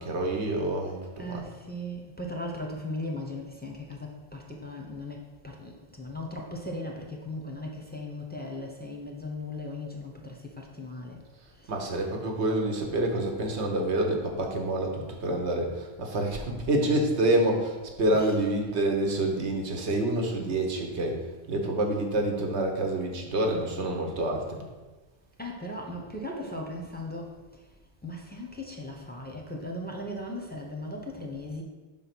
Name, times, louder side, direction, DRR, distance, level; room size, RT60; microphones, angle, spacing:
voice 1, 0.0-1.4 11.7-21.2 21.5-24.6, right 1 dB, 80° right, 2 dB, 1.3 m, -27 dB
voice 2, 1.2-11.2 11.6-11.7 18.1-18.3 25.4-27.6 28.0-31.6, left 1 dB, 10° left, 0 dB, 0.6 m, -38 dB
5.3 x 4.1 x 6.0 m, 1.3 s
omnidirectional pair, 1.1 m